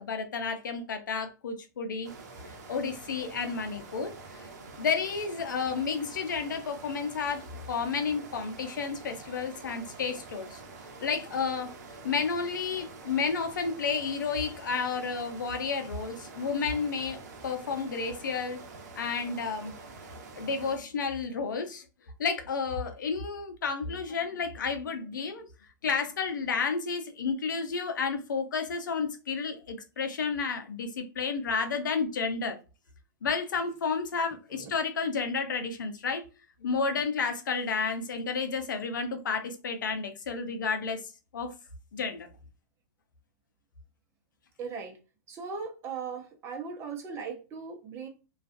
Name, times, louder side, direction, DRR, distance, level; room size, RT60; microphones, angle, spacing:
voice 1, 0.0-2.1 2.7-4.1 4.8-7.4 7.7-10.6 11.0-11.7 12.0-17.2 17.4-18.6 19.0-19.7 20.4-21.8 22.2-25.5 25.8-32.6 33.2-36.2 36.6-41.0 41.3-41.5 41.9-42.3, left 5 dB, 85° left, 0.6 m, -31 dB
sound 1, 2.0-20.8, right 3 dB, 60° right, 0.7 m, -47 dB
voice 2, 44.6-45.0 45.3-48.1, right 5 dB, 25° right, 0.7 m, -38 dB
2.4 x 2.3 x 2.5 m
hypercardioid pair, 130°, 10 cm